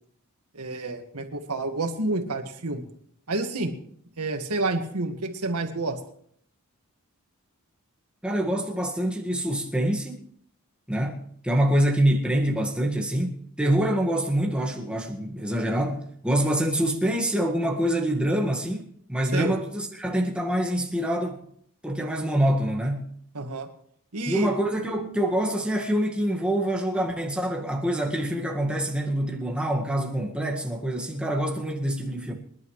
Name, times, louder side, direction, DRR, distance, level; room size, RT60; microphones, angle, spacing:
voice 1, 0.5-2.8 3.3-3.8 4.2-6.0 19.3-19.5 23.3-23.7 24.1-24.5, right 2 dB, 90° right, 1.8 m, -29 dB
voice 2, 8.2-10.2 10.9-21.4 21.8-23.1 24.3-32.3, right 1 dB, 5° right, 1.8 m, -25 dB
26.5 x 11.0 x 3.2 m
head